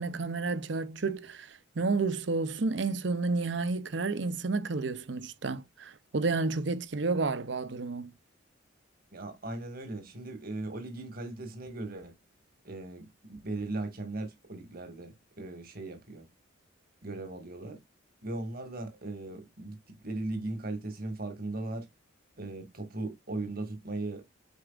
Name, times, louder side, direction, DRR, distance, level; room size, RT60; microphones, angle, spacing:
voice 1, 0.0-8.1, right 3 dB, 65° right, 0.7 m, -31 dB
voice 2, 9.1-12.1 12.6-16.2 17.0-17.8 18.2-21.9 22.4-24.2, right 2 dB, 50° right, 1.9 m, -38 dB
8.2 x 4.9 x 2.5 m
head